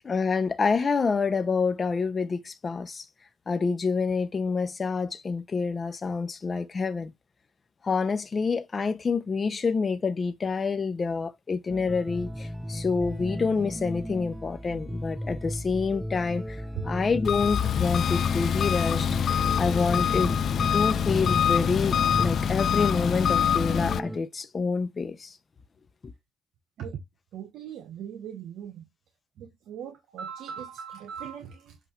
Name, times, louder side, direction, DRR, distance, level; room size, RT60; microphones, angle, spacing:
voice 1, 0.0-3.1 3.5-7.1 7.8-19.1 19.5-20.3 20.7-25.4, left 4 dB, 35° left, 1.0 m, -27 dB
sound 1, 11.7-24.2, equal, 5° right, 0.6 m, -34 dB
Engine, 17.2-24.0, left 9 dB, 60° left, 0.4 m, -25 dB
voice 2, 27.3-28.9 29.4-31.8, right 8 dB, 80° right, 1.3 m, -39 dB
8.2 x 2.9 x 4.6 m
cardioid pair, 90°, 0 cm